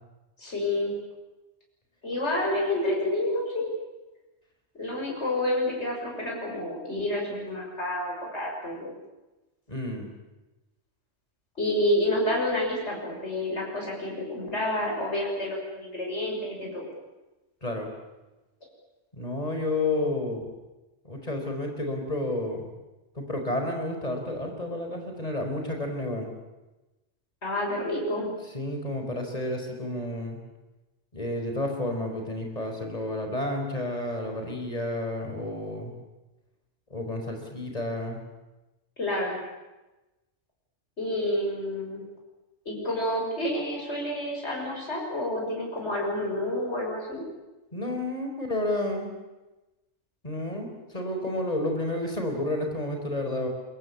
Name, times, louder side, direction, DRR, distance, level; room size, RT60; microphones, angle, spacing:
voice 1, 0.4-0.9 2.0-3.7 4.7-8.9 11.6-16.8 27.4-28.3 39.0-39.4 41.0-42.0 42.6-47.2, left 1 dB, 70° left, -1 dB, 6.5 m, -29 dB
voice 2, 9.7-10.1 17.6-17.9 19.1-20.5 21.0-22.7 23.1-26.3 28.5-30.4 31.1-35.9 36.9-38.2 47.7-49.1 50.2-53.5, left 1 dB, 35° left, 3 dB, 4.8 m, -31 dB
24.0 x 23.0 x 8.5 m, 1.1 s
omnidirectional pair, 1.2 m